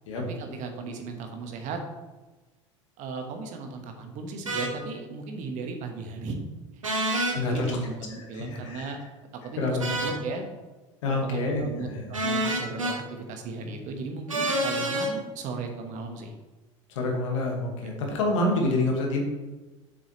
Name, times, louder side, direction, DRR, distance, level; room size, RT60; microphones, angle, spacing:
voice 1, 0.1-1.8 3.0-6.4 7.3-9.0 9.3-10.4 11.1-16.3, right 4 dB, 50° right, 4 dB, 1.3 m, -36 dB
sound 1, 4.5-4.7 6.8-7.4 9.8-10.2 12.1-13.0 14.3-15.1, right 1 dB, 90° right, 1.1 m, -27 dB
voice 2, 7.3-7.8 8.3-9.0 9.6-10.0 11.0-12.1 16.9-19.2, left 2 dB, 70° left, 1 dB, 1.8 m, -27 dB
7.2 x 6.8 x 3.2 m, 1.2 s
figure-of-eight pair, 75°, 16 cm